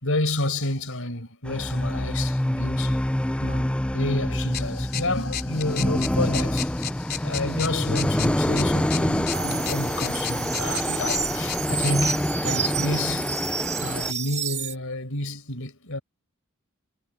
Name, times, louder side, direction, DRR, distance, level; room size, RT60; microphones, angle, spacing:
voice 1, 0.0-3.0 3.4-6.7 7.2-13.3 13.8-16.0, left 2 dB, 65° left, 5.3 m, -30 dB
sound 1, 1.5-14.1, left 1 dB, 5° left, 0.4 m, -26 dB
sound 2, 4.5-12.2, left 10 dB, 45° left, 3.4 m, -35 dB
sound 3, 9.3-14.7, right 7 dB, 35° right, 7.3 m, -30 dB
head